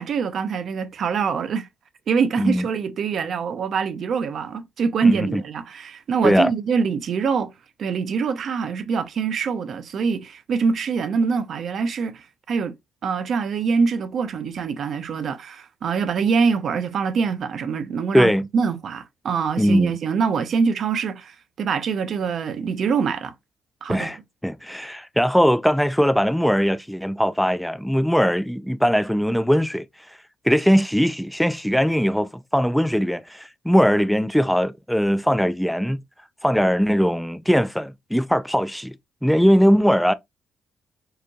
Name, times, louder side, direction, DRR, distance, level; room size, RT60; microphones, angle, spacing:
voice 1, 0.0-1.7 2.1-7.5 7.8-12.7 13.0-23.3 23.8-24.1, right 5 dB, 60° right, 0.6 m, -24 dB
voice 2, 5.0-5.4 6.2-6.5 18.1-18.5 19.6-20.0 23.9-24.2 24.4-29.9 30.4-36.0 36.4-38.9 39.2-40.1, equal, ahead, 0.3 m, -20 dB
4.7 x 3.0 x 2.3 m
cardioid pair, 90°, 0 cm